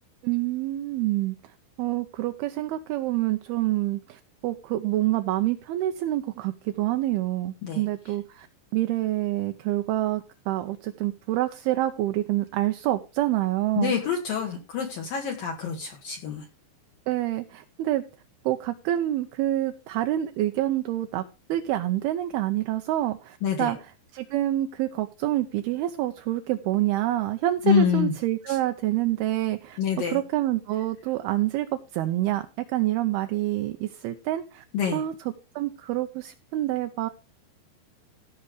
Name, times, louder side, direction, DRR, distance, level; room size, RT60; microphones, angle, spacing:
voice 1, 0.2-1.4 1.8-8.5 8.7-13.9 17.1-18.0 18.5-21.2 21.5-29.8 30.1-31.7 31.9-34.6 34.9-35.2 35.6-37.1, right 14 dB, 80° right, 7 dB, 2.2 m, -27 dB
voice 2, 13.8-16.4 23.4-23.7 27.6-28.1 28.5-28.6 29.8-30.2 34.7-35.0, left 7 dB, 60° left, 1 dB, 3.0 m, -26 dB
15.5 x 5.7 x 4.9 m, 0.32 s
omnidirectional pair, 5.2 m